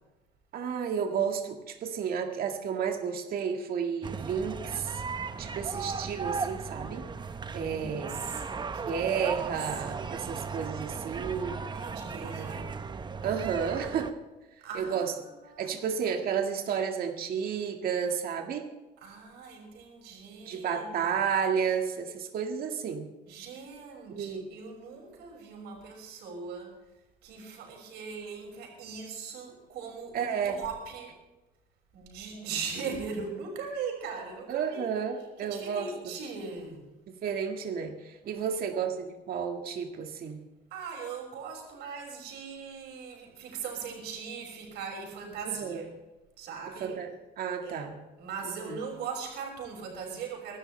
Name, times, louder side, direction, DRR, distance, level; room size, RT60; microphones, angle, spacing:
voice 1, 0.5-5.0 5.4-7.0 7.5-8.2 8.9-11.6 12.2-12.6 13.2-14.1 14.7-15.1 15.6-18.7 20.5-23.1 24.1-24.5 30.1-30.6 34.5-35.9 37.2-40.4 45.5-45.8 46.8-47.1 47.4-48.0 48.6-48.8, right 7 dB, 60° right, 3 dB, 1.9 m, -32 dB
sound 1, 4.0-14.1, right 5 dB, 25° right, 0.9 m, -36 dB
voice 2, 7.4-8.4 8.7-9.5 11.7-12.7 14.6-15.1 15.4-15.8 16.3-16.4 19.0-21.1 23.3-26.7 27.2-31.1 31.9-34.9 35.4-36.8 38.2-38.8 40.7-45.9 46.4-47.0 47.6-47.9 48.2-50.6, right 5 dB, 85° right, 0 dB, 6.1 m, -40 dB
24.0 x 12.5 x 3.4 m, 1.1 s
cardioid pair, 110°, 17 cm